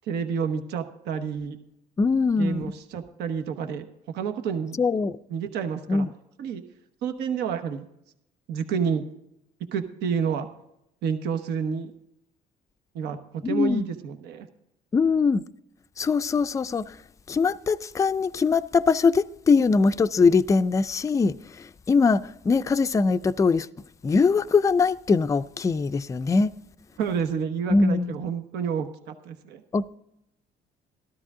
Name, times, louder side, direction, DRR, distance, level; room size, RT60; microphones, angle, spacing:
voice 1, 0.1-1.6 2.4-4.8 5.3-6.1 6.4-6.6 7.0-7.8 8.5-9.0 9.7-10.5 11.0-11.9 12.9-14.5 27.0-29.6, right 7 dB, 80° right, 1.1 m, -29 dB
voice 2, 2.0-2.7 4.8-5.2 5.9-6.1 13.4-13.8 14.9-15.4 16.0-16.9 17.3-21.3 21.9-23.7 24.0-26.5 27.7-28.2 29.7-30.0, left 4 dB, 20° left, 0.4 m, -22 dB
13.5 x 13.0 x 3.7 m
cardioid pair, 110°, 17 cm